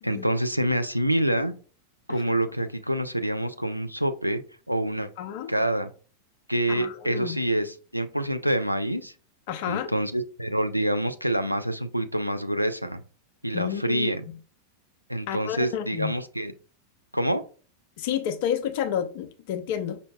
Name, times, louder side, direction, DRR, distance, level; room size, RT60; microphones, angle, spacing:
voice 1, 0.0-1.5 2.1-4.4 4.7-5.1 5.5-5.9 6.5-9.1 9.7-13.0 13.4-14.3 15.1-16.5 17.1-17.4, right 1 dB, 90° right, 0.3 m, -26 dB
voice 2, 5.2-5.5 6.7-7.4 9.5-9.9 13.5-14.1 15.3-16.1 18.0-20.0, left 9 dB, 50° left, 0.5 m, -30 dB
5.4 x 2.5 x 2.2 m
figure-of-eight pair, 90°, 0 cm